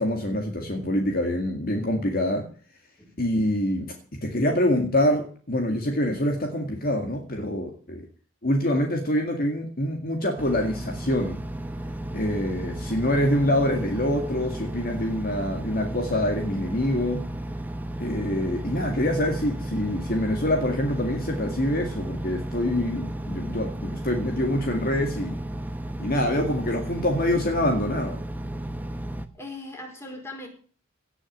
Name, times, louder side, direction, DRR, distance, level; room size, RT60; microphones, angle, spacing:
voice 1, 0.0-2.4 3.2-8.1 8.4-11.4 12.1-17.3 18.0-25.4 26.0-28.2, left 1 dB, 45° left, 3 dB, 2.1 m, -25 dB
Engine, 10.4-29.3, right 1 dB, 10° right, 1.1 m, -34 dB
voice 2, 29.3-30.5, left 2 dB, 10° left, 2 dB, 4.8 m, -39 dB
18.0 x 6.4 x 8.7 m, 0.43 s
head